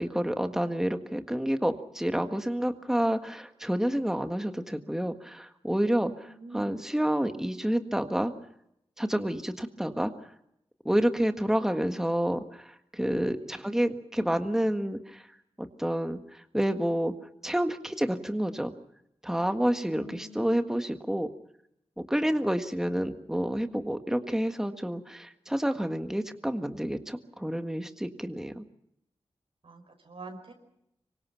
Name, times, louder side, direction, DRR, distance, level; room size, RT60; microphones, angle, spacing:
voice 1, 0.0-6.3 6.5-8.3 9.0-10.1 10.9-15.2 15.6-17.1 17.4-18.7 19.2-21.3 22.0-28.6, equal, 5° right, 7 dB, 1.6 m, -29 dB
voice 2, 6.2-6.8 13.2-13.6 19.8-20.4 22.3-23.2 29.6-30.5, right 2 dB, 65° right, 2 dB, 5.2 m, -47 dB
26.0 x 24.0 x 5.8 m, 0.78 s
wide cardioid pair, 105°, 10 cm